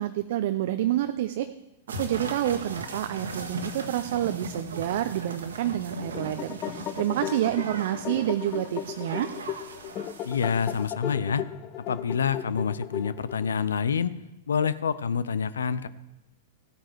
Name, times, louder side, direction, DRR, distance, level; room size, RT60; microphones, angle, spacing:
voice 1, 0.0-1.5 2.0-9.3, right 13 dB, 60° right, 9 dB, 0.6 m, -28 dB
sound 1, 1.9-10.9, right 2 dB, 75° right, 1.5 m, -38 dB
sound 2, 5.9-13.5, left 10 dB, 35° left, 0.7 m, -36 dB
voice 2, 10.2-11.5 11.9-14.1 14.5-15.9, left 6 dB, 75° left, 16 dB, 0.6 m, -27 dB
15.0 x 8.8 x 4.7 m, 0.95 s
hypercardioid pair, 105°, 0 cm